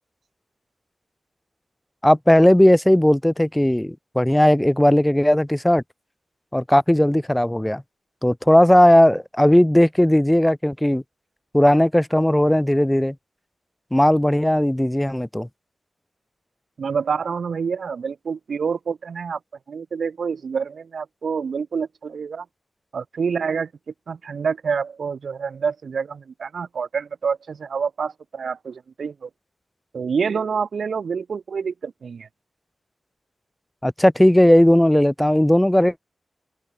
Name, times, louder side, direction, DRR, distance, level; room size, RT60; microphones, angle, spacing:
voice 1, 2.0-5.8 6.5-7.8 8.2-11.0 11.5-13.1 13.9-15.5 33.8-36.0, left 1 dB, 10° left, 0.5 m, -17 dB
voice 2, 16.8-19.4 19.7-22.5 22.9-23.7 24.1-29.3 29.9-32.3, right 6 dB, 80° right, 0.3 m, -27 dB
cardioid pair, 65°, 0 cm